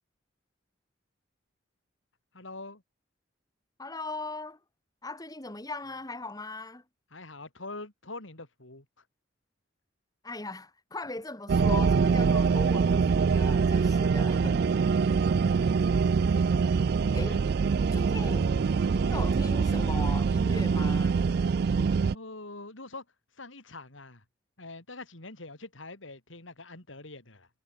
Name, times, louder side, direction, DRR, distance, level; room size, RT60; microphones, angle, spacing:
voice 1, 2.3-2.8 7.1-8.9 14.7-14.8 17.2-17.4 18.2-18.3 22.1-23.0 23.4-24.2 24.6-27.5, left 2 dB, 85° left, 4.5 m, -44 dB
voice 2, 3.8-4.6 5.0-6.8 10.2-15.0 17.1-17.4 17.9-18.5 18.9-21.2, left 2 dB, 20° left, 2.4 m, -39 dB
sound 1, 11.5-22.1, right 5 dB, 55° right, 0.4 m, -24 dB
head